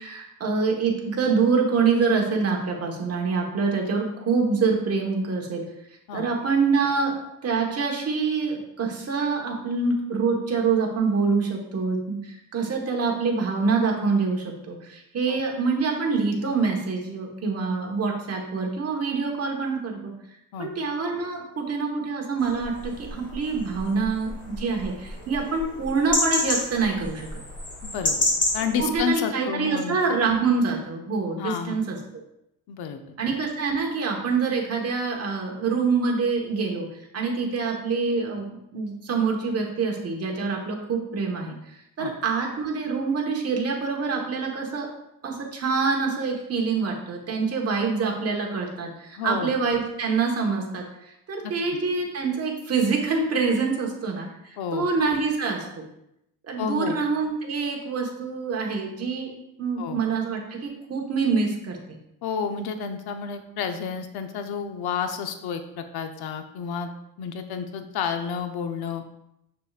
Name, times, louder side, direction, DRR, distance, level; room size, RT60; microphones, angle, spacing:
voice 1, 0.0-5.6 6.1-7.1 7.4-20.1 20.6-27.4 28.8-32.0 33.2-36.9 37.1-38.5 38.7-41.5 42.0-44.9 45.2-50.8 51.3-54.3 54.7-55.7 56.5-59.3 59.6-62.0, right 4 dB, 40° right, 0 dB, 1.4 m, -25 dB
sound 1, 22.4-29.0, left 2 dB, 30° left, 1.6 m, -30 dB
voice 2, 27.8-28.3 28.5-30.2 31.4-31.8 32.7-33.0 42.0-42.1 49.2-49.5 51.4-51.5 54.6-54.9 56.6-57.0 59.8-60.0 62.2-66.9 67.2-69.0, left 6 dB, 85° left, 7 dB, 0.8 m, -30 dB
6.8 x 6.6 x 2.4 m, 0.82 s
cardioid pair, 140°, 37 cm